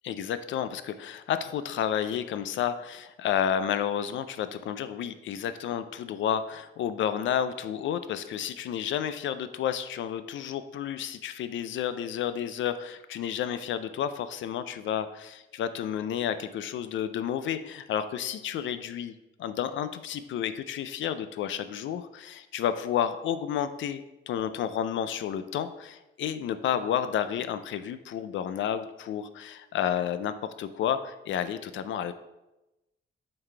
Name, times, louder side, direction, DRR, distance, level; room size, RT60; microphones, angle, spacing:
voice 1, 0.0-19.1 19.4-32.1, left 9 dB, 65° left, 11 dB, 0.4 m, -31 dB
7.7 x 4.0 x 3.2 m, 0.97 s
cardioid pair, 130°, 21 cm